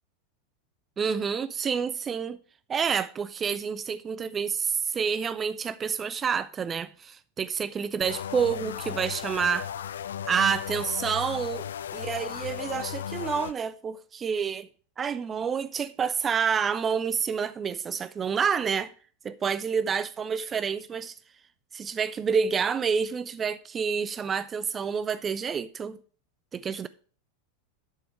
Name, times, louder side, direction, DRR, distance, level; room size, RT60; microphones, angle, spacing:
voice 1, 1.0-2.4 2.7-9.7 10.3-14.7 15.0-18.9 19.2-21.1 21.7-26.0 26.5-26.9, right 6 dB, 25° right, 0.4 m, -28 dB
sound 1, 8.0-13.5, left 9 dB, 70° left, 0.4 m, -35 dB
8.5 x 6.5 x 4.7 m
figure-of-eight pair, 90°, 0 cm